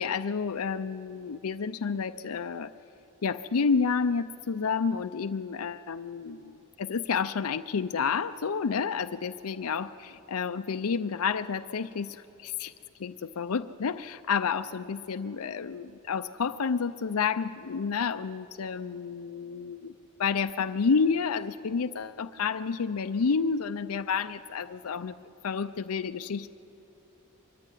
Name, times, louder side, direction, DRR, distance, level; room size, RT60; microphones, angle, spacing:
voice 1, 0.0-2.7 3.2-12.7 13.0-19.9 20.2-25.2 25.4-26.5, left 5 dB, 80° left, 10 dB, 0.5 m, -30 dB
24.0 x 23.0 x 9.2 m, 2.9 s
head